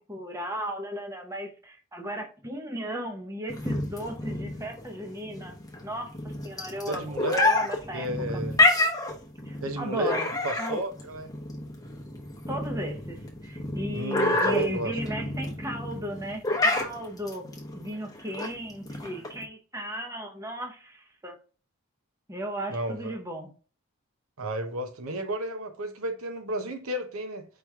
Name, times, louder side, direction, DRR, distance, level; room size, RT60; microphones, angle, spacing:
voice 1, 0.0-5.6 5.8-6.1 6.4-8.1 8.3-8.4 9.5-10.3 10.6-10.8 12.5-17.5 17.7-21.4 22.3-23.5, right 1 dB, 15° right, 0.8 m, -36 dB
sound 1, 3.5-19.4, left 2 dB, 15° left, 0.9 m, -28 dB
voice 2, 6.9-7.5 7.9-8.6 9.6-10.2 10.4-11.3 13.9-14.9 22.7-23.1 24.4-27.5, right 1 dB, 75° right, 0.8 m, -32 dB
4.9 x 3.0 x 3.5 m
head